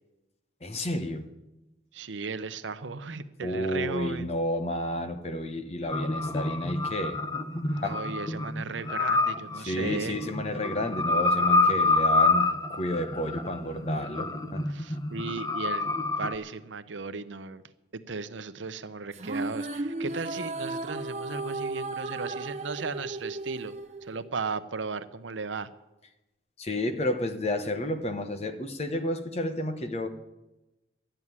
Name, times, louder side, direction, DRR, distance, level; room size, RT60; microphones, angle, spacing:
voice 1, 0.6-1.3 3.4-7.2 7.7-8.0 9.6-14.6 26.6-30.1, left 1 dB, 35° left, 8 dB, 1.1 m, -31 dB
voice 2, 1.9-4.3 7.7-10.2 14.7-17.6 17.9-23.8 24.0-25.7, right 4 dB, 90° right, 12 dB, 0.8 m, -36 dB
sound 1, 5.9-16.3, left 3 dB, 20° left, 0.7 m, -27 dB
sound 2, 19.1-24.6, right 2 dB, 35° right, 0.8 m, -35 dB
12.5 x 9.1 x 9.7 m, 1.0 s
head